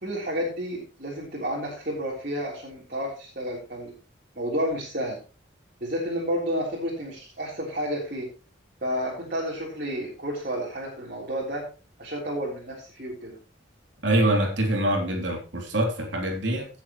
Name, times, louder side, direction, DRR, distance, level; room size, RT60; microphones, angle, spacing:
voice 1, 0.0-3.9 4.4-5.2 5.8-8.3 8.8-11.7 12.0-13.4, equal, 45° right, 3.7 m, -31 dB
voice 2, 14.0-16.7, right 1 dB, 65° right, 3.4 m, -24 dB
17.5 x 7.5 x 3.1 m
head